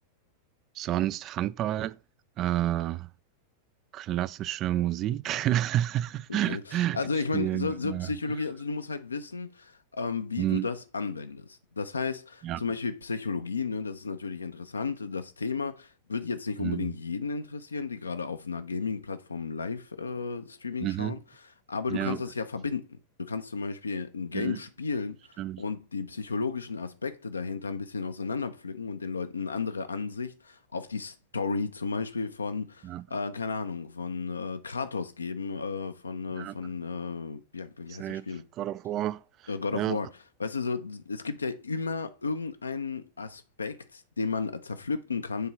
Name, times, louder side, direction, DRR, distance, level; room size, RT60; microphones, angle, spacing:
voice 1, 0.8-2.0 2.4-3.1 3.9-7.0 7.3-8.1 10.4-10.7 12.4-12.6 16.6-16.9 20.8-21.2 21.9-22.2 24.3-24.6 25.4-25.6 32.8-33.0 36.4-36.5 38.0-38.2 38.6-39.2 39.7-40.0, right 13 dB, 35° right, 0.3 m, -29 dB
voice 2, 6.3-21.2 21.7-25.3 25.6-38.4 39.5-40.1 40.4-45.5, left 4 dB, 75° left, 0.7 m, -33 dB
6.8 x 3.8 x 4.3 m
figure-of-eight pair, 90°, 0 cm